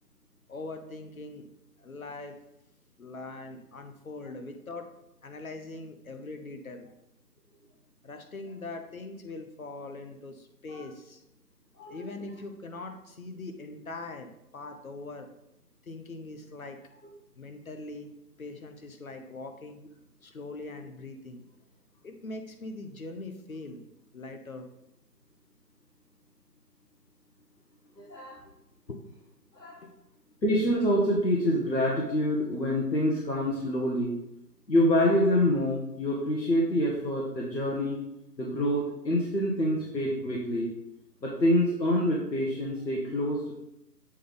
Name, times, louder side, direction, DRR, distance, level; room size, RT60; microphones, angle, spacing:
voice 1, 0.5-1.5 1.8-2.4 3.0-4.9 5.2-6.9 8.0-11.2 11.9-15.3 15.8-16.8 17.4-18.1 18.4-19.8 20.2-21.5 22.0-23.8 24.1-24.7 28.4-28.5 28.9-29.0 29.8-29.9, left 2 dB, 55° left, 6 dB, 1.0 m, -41 dB
voice 2, 28.0-28.4 29.5-29.8 30.4-34.1 34.7-38.0 38.4-40.7 41.2-43.5, equal, 85° left, -4 dB, 1.6 m, -26 dB
7.6 x 3.5 x 4.0 m, 0.84 s
figure-of-eight pair, 160°, 50 cm